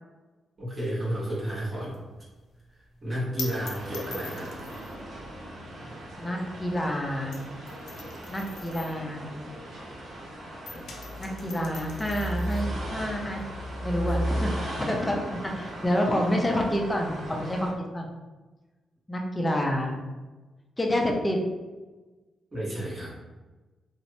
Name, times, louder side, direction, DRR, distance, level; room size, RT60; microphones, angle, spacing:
voice 1, 0.6-2.0 3.0-4.5 14.1-14.2 15.4-15.5 22.5-23.1, equal, 35° right, -7 dB, 1.0 m, -32 dB
sound 1, 1.3-10.2 10.5-17.7, left 4 dB, 75° left, 0.5 m, -46 dB
sound 2, 3.7-17.7, right 1 dB, 70° right, 0.8 m, -36 dB
voice 2, 6.2-7.4 8.3-9.3 11.2-13.4 13.8-18.1 19.1-20.0 20.8-21.4, equal, 15° left, 1 dB, 0.5 m, -28 dB
3.0 x 2.0 x 2.6 m, 1.2 s
cardioid pair, 95°, 0 cm